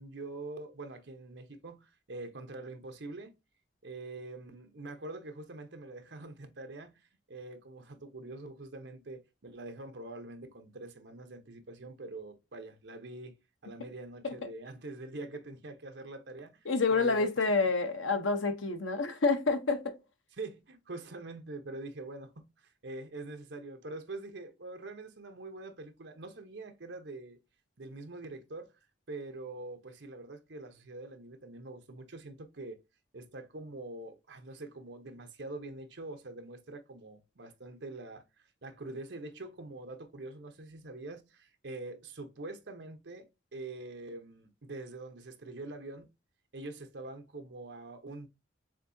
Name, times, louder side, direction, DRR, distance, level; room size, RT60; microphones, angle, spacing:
voice 1, 0.0-3.3 3.8-13.4 13.6-17.3 20.4-27.4 27.8-28.7 29.1-32.8 33.1-46.1 46.5-48.3, right 2 dB, 65° right, 0.9 m, -44 dB
voice 2, 16.7-20.0, left 4 dB, 85° left, 0.9 m, -28 dB
7.3 x 2.7 x 2.7 m
head